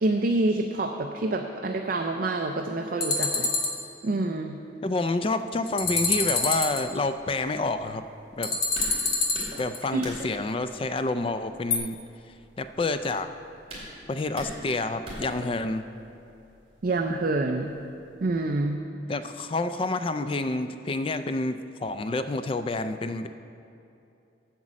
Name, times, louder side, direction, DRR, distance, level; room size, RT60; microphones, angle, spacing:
voice 1, 0.0-3.5 4.0-4.6 9.9-10.0 16.8-17.7 18.2-18.8, right 2 dB, 45° right, 4 dB, 0.4 m, -27 dB
sound 1, 3.0-3.8 5.7-6.9 8.4-9.8 11.7-11.8, left 3 dB, 55° left, 1.0 m, -26 dB
voice 2, 4.8-8.0 8.4-8.6 9.6-12.0 12.6-13.3 14.1-15.8 19.1-23.3, left 2 dB, 30° left, 10 dB, 0.3 m, -28 dB
sound 2, 5.8-18.6, equal, 30° right, 2.4 m, -45 dB
8.0 x 6.1 x 7.4 m, 2.7 s
head